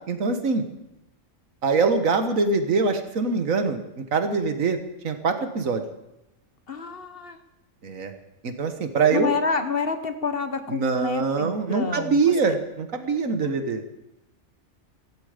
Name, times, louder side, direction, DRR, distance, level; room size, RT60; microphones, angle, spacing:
voice 1, 0.1-0.6 1.6-4.8 5.0-5.8 7.8-8.1 8.4-9.3 10.7-13.8, right 4 dB, 80° right, 8 dB, 1.8 m, -23 dB
voice 2, 6.7-7.4 9.1-12.2 13.4-13.7, left 4 dB, 50° left, 9 dB, 1.3 m, -28 dB
15.5 x 15.5 x 5.1 m, 0.92 s
omnidirectional pair, 1.4 m